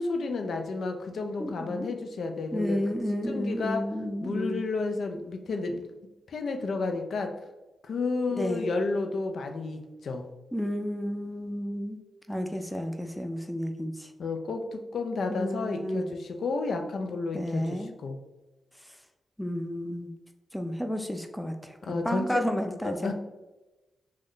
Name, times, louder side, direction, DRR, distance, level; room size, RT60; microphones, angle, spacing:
voice 1, 0.0-2.8 3.3-3.9 4.2-5.8 6.3-7.3 7.8-10.3 14.2-18.2 21.8-22.4 22.8-23.1, left 3 dB, 75° left, 5 dB, 0.4 m, -31 dB
voice 2, 1.4-2.0 2.5-4.6 8.3-8.7 10.5-12.0 12.3-14.1 15.3-16.0 17.3-17.9 19.4-20.1 20.5-21.7 22.0-23.1, equal, 5° left, 5 dB, 0.4 m, -31 dB
3.1 x 2.1 x 3.7 m, 1.1 s
cardioid pair, 55°, 0 cm